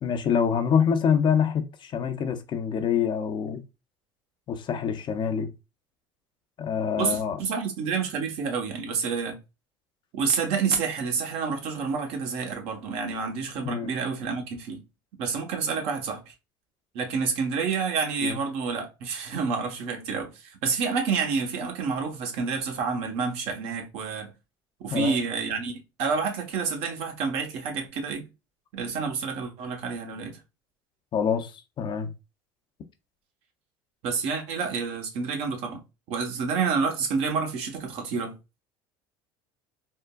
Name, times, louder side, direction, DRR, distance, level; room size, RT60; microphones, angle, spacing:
voice 1, 0.0-3.6 4.5-5.5 6.6-7.4 13.6-13.9 18.2-18.4 24.9-25.2 31.1-32.1, left 7 dB, 45° left, 0.5 m, -26 dB
voice 2, 7.0-9.4 10.1-14.8 15.2-16.3 16.9-24.3 24.8-28.2 28.7-30.4 34.0-35.8 36.1-38.4, right 5 dB, 65° right, 0.9 m, -29 dB
3.5 x 2.2 x 2.2 m
hypercardioid pair, 80°, 11 cm